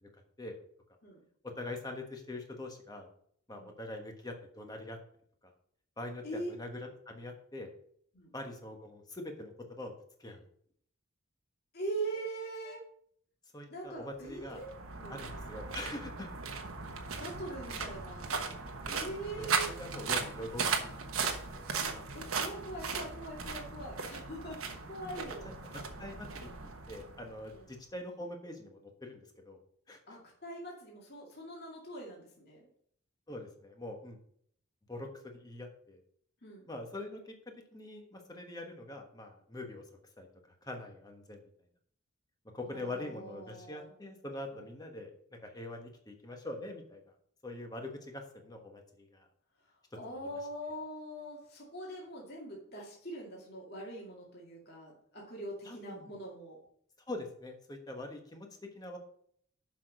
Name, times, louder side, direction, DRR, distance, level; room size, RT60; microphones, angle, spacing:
voice 1, 1.4-3.1 3.5-5.0 6.0-7.7 8.3-9.9 10.2-10.4 13.5-14.6 15.1-16.3 19.3-22.0 25.4-25.5 26.0-26.5 26.9-29.2 29.4-29.6 29.9-30.2 33.3-34.2 34.9-36.0 36.7-39.8 40.2-40.3 40.6-41.4 42.5-47.0 47.4-49.2 55.6-56.1 57.1-59.0, left 2 dB, 20° left, 3 dB, 1.3 m, -44 dB
voice 2, 11.7-12.8 13.7-14.7 15.0-15.2 17.1-18.3 18.9-19.7 22.1-25.5 27.5-27.7 30.1-32.7 36.4-36.7 42.7-43.9 44.5-44.6 49.9-56.6, right 2 dB, 50° left, -4 dB, 2.2 m, -42 dB
sound 1, 14.2-27.6, right 5 dB, 80° right, 1.2 m, -37 dB
7.4 x 6.0 x 5.3 m, 0.64 s
head